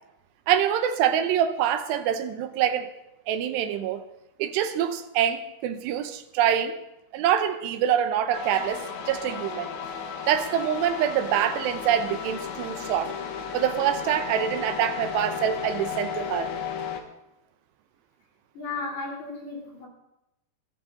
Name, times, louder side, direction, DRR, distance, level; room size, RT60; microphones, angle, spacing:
voice 1, 0.5-2.9 3.3-4.0 4.4-6.7 7.1-9.7 10.3-13.1 13.5-16.5, right 9 dB, 75° right, 2.9 m, -25 dB
sound 1, 8.3-17.0, left 7 dB, 80° left, 3.8 m, -34 dB
voice 2, 18.6-19.9, left 3 dB, 45° left, 4.2 m, -34 dB
21.5 x 11.0 x 3.8 m
omnidirectional pair, 5.3 m